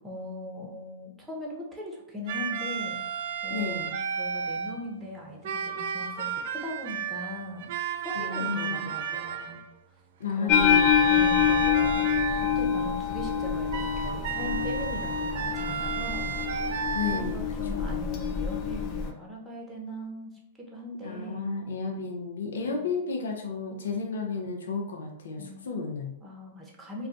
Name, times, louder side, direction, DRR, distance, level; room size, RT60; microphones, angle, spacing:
voice 1, 0.0-3.0 3.4-7.7 8.0-9.6 10.4-10.7 11.1-12.0 12.4-16.7 17.1-20.3 20.7-21.6 22.6-22.8 25.4-25.7 26.2-27.1, left 1 dB, 5° right, -3 dB, 0.8 m, -39 dB
sound 1, 2.3-4.9 5.4-9.7 10.5-12.6 13.7-17.2, right 7 dB, 60° right, 0.3 m, -33 dB
voice 2, 3.5-3.9 8.1-8.9 10.2-11.0 16.9-18.1 21.0-26.1, left 4 dB, 80° left, 1 dB, 0.6 m, -33 dB
sound 2, 10.5-19.1, left 8 dB, 35° left, 0.4 m, -26 dB
2.3 x 2.3 x 3.9 m, 0.82 s
hypercardioid pair, 130°, 0 cm